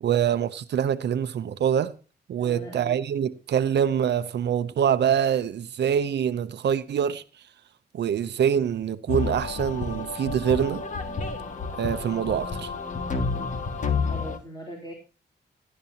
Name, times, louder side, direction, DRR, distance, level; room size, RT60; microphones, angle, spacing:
voice 1, 0.0-1.9 2.3-7.2 7.9-10.8 11.7-12.7, right 8 dB, 70° right, 0.7 m, -25 dB
voice 2, 2.4-3.0 14.1-14.9, right 1 dB, 25° left, 3.3 m, -40 dB
sound 1, 9.1-14.4, left 4 dB, 45° left, 2.0 m, -30 dB
17.5 x 12.0 x 2.9 m
wide cardioid pair, 140°, 18 cm